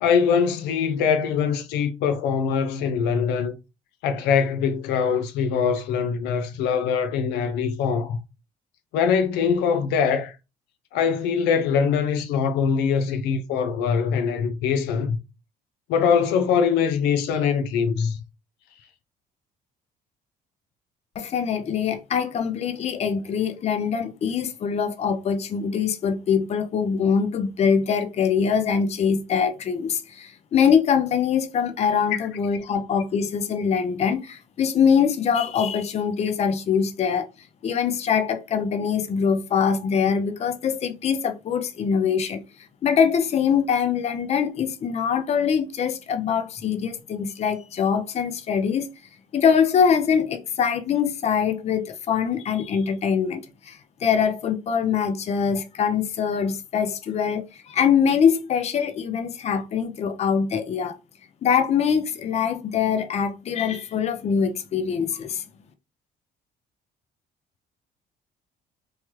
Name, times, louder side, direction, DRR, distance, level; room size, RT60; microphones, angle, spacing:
voice 1, 0.0-3.6 4.0-8.2 8.9-10.4 10.9-15.2 15.9-18.2 32.1-32.3, left 6 dB, 90° left, 0.5 m, -23 dB
voice 2, 21.2-37.3 37.6-42.4 42.8-48.9 49.3-61.0 61.4-65.4, left 7 dB, 40° left, 0.5 m, -23 dB
3.1 x 2.2 x 2.9 m
cardioid pair, 110°, 17 cm